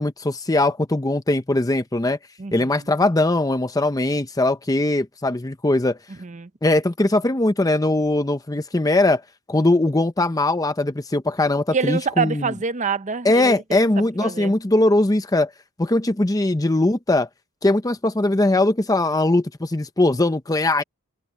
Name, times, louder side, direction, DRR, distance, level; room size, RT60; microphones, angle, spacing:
voice 1, 0.0-2.2 2.5-6.0 6.6-9.2 9.5-12.5 13.2-15.5 15.8-17.3 17.6-20.8, left 2 dB, 15° left, 0.7 m, -20 dB
voice 2, 2.4-2.8 6.2-6.5 11.7-13.8 14.2-14.5, right 5 dB, 35° right, 0.7 m, -26 dB
head